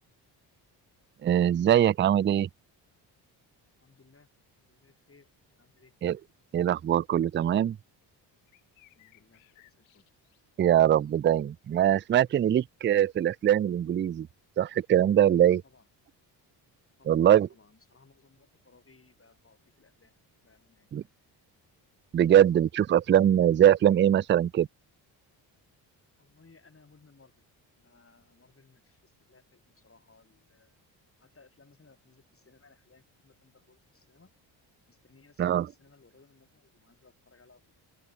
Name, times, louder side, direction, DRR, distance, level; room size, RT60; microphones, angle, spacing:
voice 1, 1.2-2.5 6.0-6.2 6.5-7.8 10.6-14.3 14.6-15.6 17.1-17.5 20.9-21.0 22.1-24.7 35.4-35.7, right 10 dB, 25° right, 0.4 m, -22 dB
voice 2, 3.8-4.3 4.6-5.3 5.6-5.9 8.9-10.0 15.6-15.9 17.0-20.1 20.4-20.9 26.2-27.3 27.8-30.8 31.2-34.3 34.9-37.6, left 4 dB, 30° left, 7.5 m, -61 dB
sound 1, 6.4-7.0 7.4-7.5 8.5-10.4 11.0-11.1 11.9-12.0, left 19 dB, 90° left, 3.3 m, -63 dB
open air
supercardioid pair, 70°, 45 cm